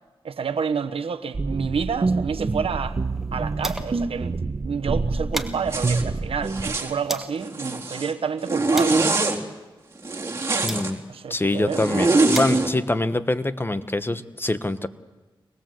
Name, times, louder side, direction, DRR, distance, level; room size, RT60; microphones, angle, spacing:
voice 1, 0.2-3.0 3.3-4.3 4.6-9.1 11.1-11.8, right 6 dB, 85° right, 1.1 m, -29 dB
sound 1, 1.3-6.8, right 3 dB, 50° right, 1.3 m, -27 dB
sound 2, 2.3-4.1 4.5-4.6 4.9-7.4 8.1-11.3 12.0-14.2, right 1 dB, 5° right, 2.3 m, -38 dB
Zipper (clothing), 5.7-6.0 6.5-6.9 7.4-8.1 8.5-9.4 10.0-10.9 11.7-12.7, right 3 dB, 30° right, 3.7 m, -23 dB
voice 2, 10.6-11.0 11.3-14.9, left 2 dB, 25° left, 1.3 m, -25 dB
25.0 x 20.5 x 7.8 m
cardioid pair, 50°, 9 cm